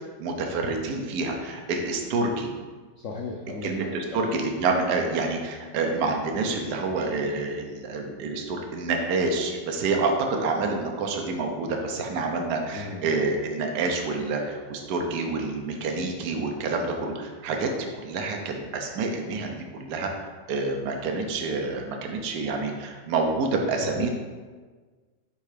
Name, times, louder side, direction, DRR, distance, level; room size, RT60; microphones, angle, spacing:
voice 1, 0.2-2.5 3.6-17.7 18.0-24.1, right 3 dB, 65° right, 2 dB, 1.3 m, -28 dB
voice 2, 3.0-4.2 12.7-13.1 23.8-24.1, left 4 dB, 90° left, 0 dB, 0.6 m, -36 dB
5.6 x 3.8 x 4.9 m, 1.4 s
omnidirectional pair, 2.0 m